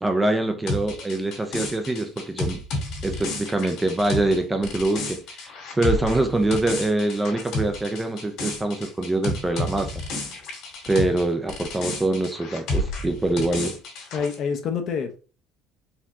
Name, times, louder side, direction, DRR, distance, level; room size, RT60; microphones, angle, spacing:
voice 1, 0.0-2.6 3.0-9.9 10.8-13.8, right 2 dB, 10° right, 0.5 m, -24 dB
sound 1, 0.7-11.2 11.5-14.3, left 1 dB, 60° left, 2.0 m, -31 dB
voice 2, 14.1-15.2, left 6 dB, 40° left, 0.7 m, -27 dB
4.6 x 2.7 x 3.6 m
cardioid pair, 160°, 0 cm